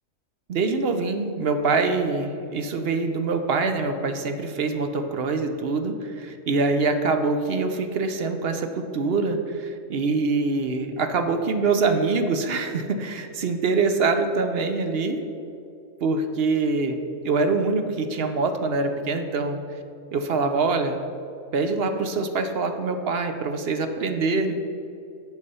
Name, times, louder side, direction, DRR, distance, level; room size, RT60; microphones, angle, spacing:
voice 1, 0.5-15.2 16.0-17.0 17.2-19.6 20.1-21.0 21.5-24.5, right 3 dB, 55° right, 7 dB, 0.8 m, -24 dB
8.2 x 6.6 x 5.5 m, 2.7 s
omnidirectional pair, 1.4 m